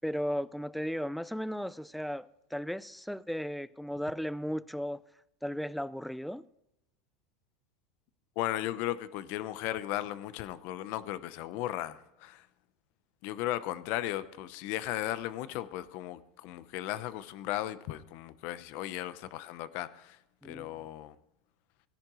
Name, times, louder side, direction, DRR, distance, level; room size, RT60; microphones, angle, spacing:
voice 1, 0.0-5.0 5.4-6.4 20.4-20.8, equal, ahead, 0.3 m, -35 dB
voice 2, 8.4-12.4 13.2-20.2 20.4-21.1, left 14 dB, 55° left, 0.8 m, -36 dB
17.5 x 10.5 x 3.1 m
supercardioid pair, 145°, 4 cm